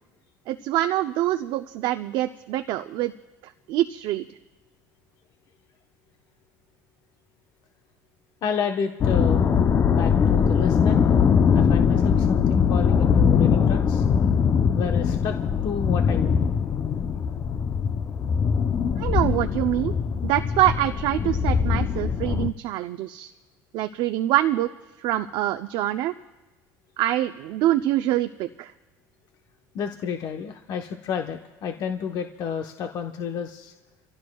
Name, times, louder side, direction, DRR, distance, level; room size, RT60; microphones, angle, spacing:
voice 1, 0.5-3.1 3.4-4.3 19.0-19.9 20.2-23.3 23.7-24.7 25.0-26.1 27.0-28.7, right 14 dB, 70° right, 7 dB, 0.6 m, -25 dB
voice 2, 8.4-9.4 9.9-11.0 11.5-14.0 14.7-15.3 15.6-16.4 29.7-33.7, left 7 dB, 55° left, 4 dB, 1.0 m, -30 dB
sound 1, 9.0-22.5, left 7 dB, 35° left, 0.6 m, -21 dB
30.0 x 15.5 x 2.3 m, 1.1 s
supercardioid pair, 110°, 8 cm